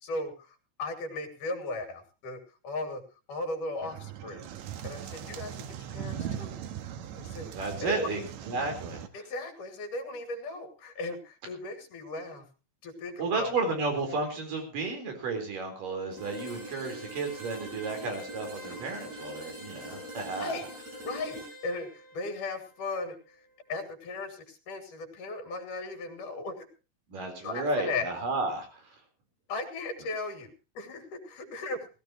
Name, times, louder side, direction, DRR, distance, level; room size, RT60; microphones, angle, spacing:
voice 1, 0.0-3.0 3.3-4.5 4.8-6.5 7.2-7.5 7.8-8.2 9.1-12.5 12.8-13.5 20.4-20.7 21.0-23.2 23.7-26.7 27.4-28.1 29.5-31.9, left 2 dB, 75° left, 5 dB, 4.2 m, -37 dB
sound 1, 3.8-9.1, right 9 dB, 70° right, 2.2 m, -39 dB
voice 2, 7.5-9.0 13.2-20.6 27.1-28.8, right 3 dB, 85° right, 5 dB, 5.8 m, -32 dB
sound 2, 16.1-23.9, equal, 55° right, 8.3 m, -44 dB
19.0 x 16.5 x 3.0 m, 0.32 s
omnidirectional pair, 3.7 m